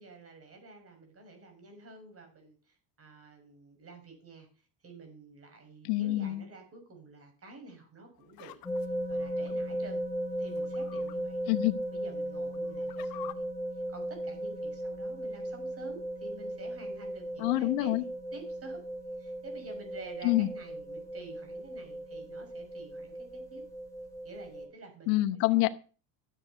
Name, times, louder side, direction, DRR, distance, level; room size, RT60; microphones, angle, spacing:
voice 1, 0.0-8.6 9.1-10.0 10.4-11.4 11.9-13.4 13.7-17.9 18.3-18.8 19.2-23.6 24.2-25.2, right 3 dB, 30° right, 5 dB, 6.0 m, -50 dB
voice 2, 5.8-6.4 11.5-11.8 17.4-18.0 20.2-20.5 25.1-25.7, left 18 dB, 90° left, 14 dB, 1.1 m, -26 dB
sound 1, 8.2-9.5 10.5-11.1 11.6-11.7 12.4-13.3, left 16 dB, 50° left, 1.0 m, -48 dB
sound 2, 8.6-24.7, right 1 dB, 5° left, 3.8 m, -37 dB
13.5 x 8.0 x 5.7 m, 0.37 s
cardioid pair, 125°, 46 cm